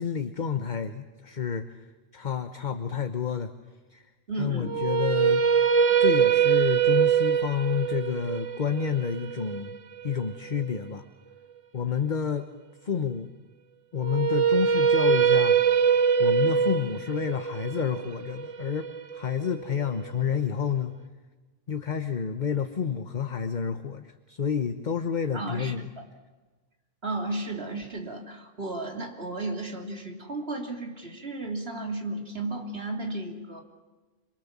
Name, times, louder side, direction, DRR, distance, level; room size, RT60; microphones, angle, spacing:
voice 1, 0.0-1.8 2.1-3.5 3.9-4.1 4.4-5.4 6.0-9.8 10.0-11.0 11.7-12.5 12.8-13.3 13.9-15.6 16.2-20.9 21.7-25.9, left 7 dB, 40° left, 8 dB, 1.1 m, -29 dB
voice 2, 4.3-4.8 25.3-26.0 27.0-33.6, right 2 dB, 50° right, 2 dB, 3.4 m, -34 dB
sound 1, 4.6-10.8 14.0-20.1, right 7 dB, 70° right, 1.3 m, -23 dB
27.0 x 23.0 x 7.4 m, 1.3 s
omnidirectional pair, 1.3 m